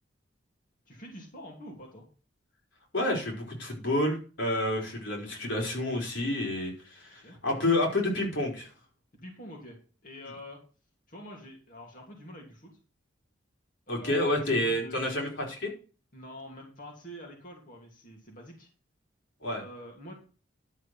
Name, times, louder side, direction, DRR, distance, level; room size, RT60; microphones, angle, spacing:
voice 1, 0.9-2.0 7.2-7.4 9.1-10.6 11.1-12.8 13.9-15.1 16.1-18.7 19.5-20.1, equal, 45° left, -1 dB, 2.9 m, -46 dB
voice 2, 2.9-8.7 13.9-15.7 19.4-19.6, left 1 dB, 80° left, 0 dB, 4.3 m, -29 dB
11.5 x 6.4 x 6.0 m, 0.36 s
head